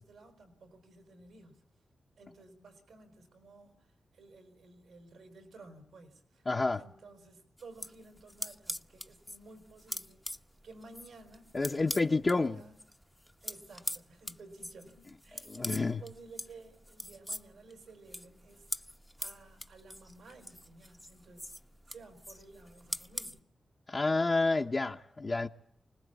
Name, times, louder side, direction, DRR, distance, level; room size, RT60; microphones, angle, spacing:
voice 1, 0.0-1.6 2.2-6.5 6.8-12.8 13.4-18.9 19.2-21.5 21.9-23.5, right 3 dB, 90° right, 4.8 m, -54 dB
voice 2, 6.5-6.8 11.5-12.6 15.5-16.0 23.9-25.5, left 3 dB, 45° left, 1.1 m, -29 dB
sound 1, 7.6-12.4 12.7-23.4, equal, 5° left, 0.9 m, -42 dB
25.5 x 19.5 x 8.4 m
cardioid pair, 55°, 0 cm